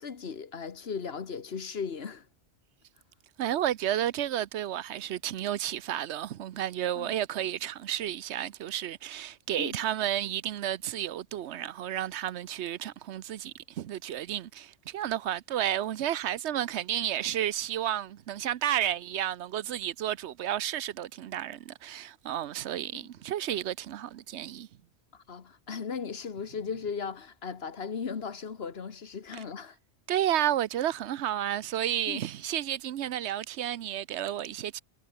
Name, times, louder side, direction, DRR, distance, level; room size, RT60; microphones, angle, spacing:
voice 1, 0.0-2.3 6.9-7.1 9.6-9.8 22.9-23.0 25.1-29.8 32.1-32.2, left 6 dB, 65° left, 1.6 m, -37 dB
voice 2, 3.4-24.7 30.1-34.8, right 11 dB, 80° right, 1.0 m, -32 dB
omnidirectional pair, 1.2 m